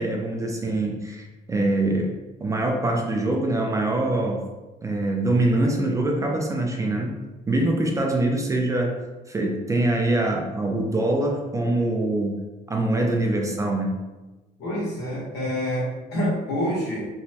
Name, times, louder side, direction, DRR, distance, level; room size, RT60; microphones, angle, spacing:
voice 1, 0.0-4.4 4.8-7.2 7.5-9.0 9.3-12.4 12.7-14.0, right 2 dB, 20° right, 1 dB, 0.3 m, -24 dB
voice 2, 14.6-17.1, equal, 75° left, -6 dB, 1.3 m, -27 dB
3.0 x 2.1 x 2.8 m, 1.1 s
cardioid pair, 110°, 17 cm